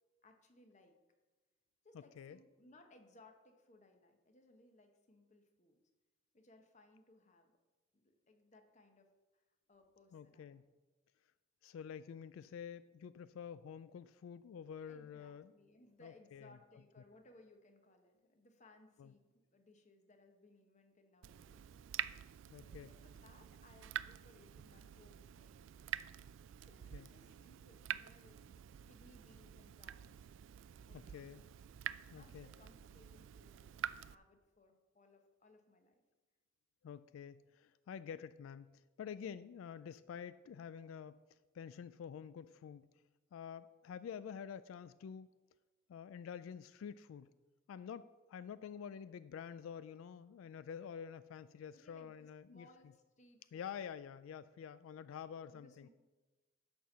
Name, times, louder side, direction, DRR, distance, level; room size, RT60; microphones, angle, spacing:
voice 1, 0.2-1.0 1.8-5.8 6.3-7.6 7.9-9.4 9.7-10.6 14.9-21.7 22.6-25.9 26.7-30.6 30.8-31.4 32.0-36.0 51.7-53.9 54.9-55.9, left 2 dB, 35° left, 5 dB, 1.0 m, -65 dB
voice 2, 1.9-2.4 10.1-10.6 11.6-15.5 16.0-16.6 19.0-19.1 22.5-22.9 26.9-27.1 30.9-31.4 32.1-32.5 36.8-41.2 41.5-42.9 43.3-45.3 45.9-47.3 47.7-52.7 53.5-55.9, left 7 dB, 85° left, 15 dB, 0.3 m, -48 dB
Water tap faucet / Drip, 21.2-34.1, right 10 dB, 70° right, 0.3 m, -47 dB
11.0 x 4.5 x 6.8 m, 1.2 s
head